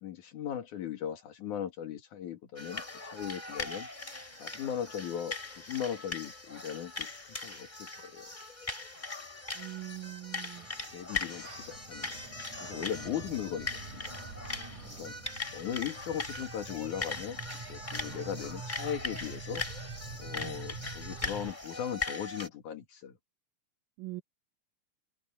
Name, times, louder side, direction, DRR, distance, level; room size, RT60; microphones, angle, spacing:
voice 1, 0.0-3.9 4.4-8.3 10.9-12.2 12.6-14.1 15.0-15.1 15.5-19.7 20.2-23.2, left 9 dB, 65° left, 3.4 m, -38 dB
sound 1, 2.6-22.5, left 3 dB, 15° left, 4.5 m, -40 dB
voice 2, 9.5-10.7 20.4-20.6 24.0-24.2, right 17 dB, 80° right, 2.4 m, -42 dB
sound 2, 10.6-21.5, right 4 dB, 60° right, 5.7 m, -46 dB
omnidirectional pair, 3.9 m